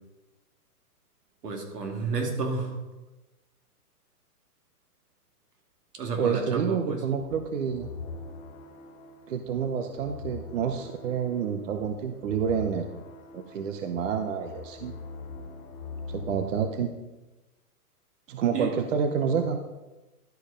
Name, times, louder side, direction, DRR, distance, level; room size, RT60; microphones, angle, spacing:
voice 1, 1.4-2.8 5.9-7.0 18.5-18.7, right 4 dB, 90° right, 2 dB, 2.6 m, -31 dB
voice 2, 6.2-7.9 9.3-13.0 13.3-15.0 16.1-16.9 18.3-19.7, right 7 dB, 55° right, 7 dB, 0.8 m, -28 dB
sound 1, 7.2-16.7, left 4 dB, 20° left, 0.8 m, -43 dB
12.0 x 5.3 x 5.0 m, 1.1 s
hypercardioid pair, 160°, 46 cm